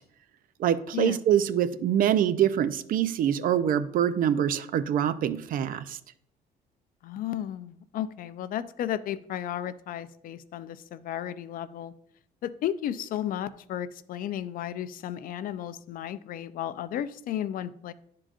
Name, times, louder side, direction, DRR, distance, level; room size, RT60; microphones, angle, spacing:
voice 1, 0.6-6.0, right 10 dB, 55° right, 13 dB, 0.5 m, -25 dB
voice 2, 7.0-11.9 12.4-17.9, left 11 dB, 55° left, 15 dB, 0.4 m, -33 dB
11.0 x 3.8 x 2.5 m, 0.68 s
cardioid pair, 110°, 17 cm